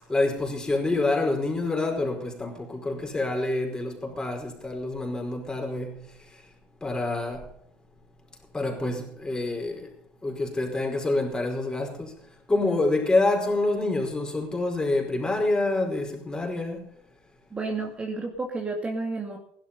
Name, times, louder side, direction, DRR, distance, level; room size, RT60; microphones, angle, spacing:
voice 1, 0.1-6.0 6.8-7.5 8.5-9.9 10.2-12.1 12.5-16.8, left 2 dB, 15° left, 5.1 m, -27 dB
voice 2, 17.5-19.4, right 3 dB, 25° right, 2.4 m, -31 dB
16.0 x 12.0 x 5.5 m
supercardioid pair, 90°, 5 cm